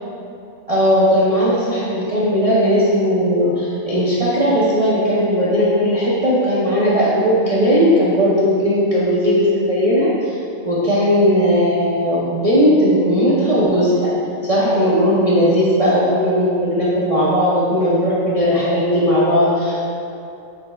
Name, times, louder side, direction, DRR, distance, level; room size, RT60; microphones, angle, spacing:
voice 1, 0.7-10.4 10.6-14.1 14.4-19.8, equal, 50° right, -9 dB, 0.4 m, -17 dB
5.1 x 4.2 x 2.3 m, 2.6 s
omnidirectional pair, 1.4 m